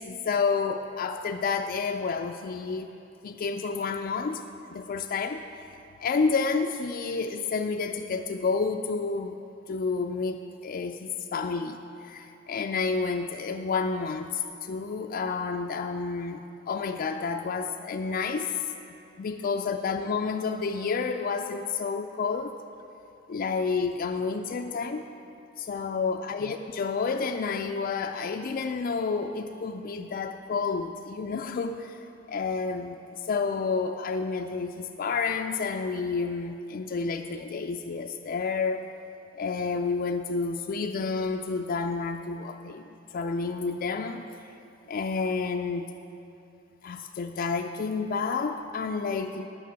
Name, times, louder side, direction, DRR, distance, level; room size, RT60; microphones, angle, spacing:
voice 1, 0.0-2.9 3.2-4.4 4.7-9.4 9.7-18.5 19.2-22.6 23.3-25.0 25.6-32.0 32.3-38.9 39.3-44.3 44.9-45.8 46.8-49.5, left 4 dB, 45° left, 4 dB, 0.3 m, -30 dB
9.3 x 5.9 x 8.0 m, 2.8 s
head